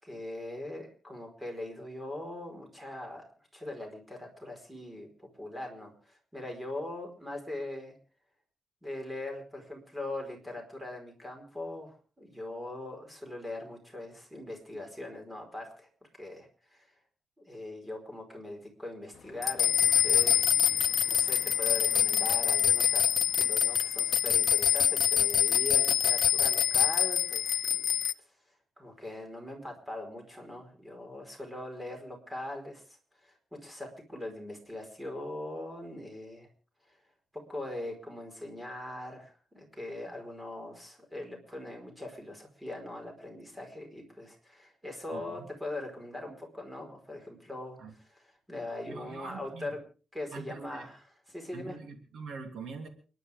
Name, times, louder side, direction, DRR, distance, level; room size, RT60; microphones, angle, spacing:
voice 1, 0.0-3.3 3.5-7.9 8.8-15.9 16.2-16.9 17.4-20.4 20.7-23.1 23.3-27.9 28.8-33.0 33.2-33.3 33.6-36.5 36.9-37.0 37.5-49.8 50.1-51.8, left 1 dB, 10° right, 3 dB, 4.7 m, -41 dB
sound 1, 19.4-28.1, left 9 dB, 75° left, 0.7 m, -25 dB
voice 2, 45.1-45.5 47.8-47.9 48.9-49.7 50.3-50.9 51.5-52.9, right 5 dB, 75° right, 5 dB, 2.9 m, -43 dB
29.5 x 11.0 x 3.6 m, 0.37 s
wide cardioid pair, 140°, 0 cm